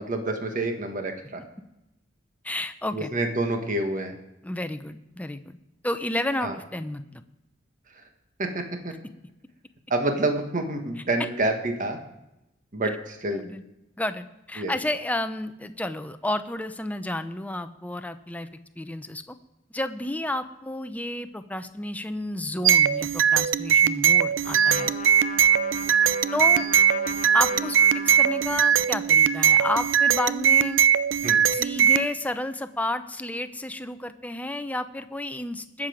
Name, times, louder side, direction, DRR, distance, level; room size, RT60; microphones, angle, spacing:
voice 1, 0.0-1.4 2.9-4.1 6.4-6.5 8.4-8.9 9.9-12.0 12.7-13.4 14.6-14.8 31.2-31.4, right 2 dB, 45° right, 5 dB, 1.5 m, -28 dB
voice 2, 2.4-3.1 4.4-5.6 5.8-7.2 13.3-13.6 14.0-18.5 18.8-19.4 19.7-24.9 26.3-26.6 27.3-27.8 28.0-30.8 31.5-35.9, left 1 dB, 10° left, 10 dB, 0.6 m, -31 dB
sound 1, 22.6-32.1, right 8 dB, 90° right, 0.5 m, -20 dB
Trumpet, 24.4-29.0, left 6 dB, 40° left, 0.8 m, -38 dB
20.0 x 7.5 x 5.1 m, 0.90 s
head